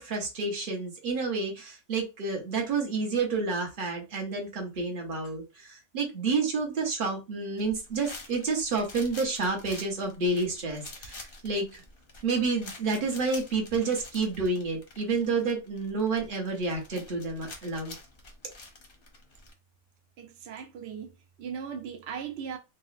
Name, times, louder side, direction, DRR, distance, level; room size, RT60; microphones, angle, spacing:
voice 1, 0.0-11.8 12.2-17.9, right 4 dB, 40° right, 0.9 m, -29 dB
sound 1, 7.6-19.5, left 3 dB, 50° left, 0.7 m, -48 dB
voice 2, 20.2-22.6, right 7 dB, 90° right, 0.5 m, -38 dB
3.8 x 2.1 x 2.4 m
omnidirectional pair, 1.6 m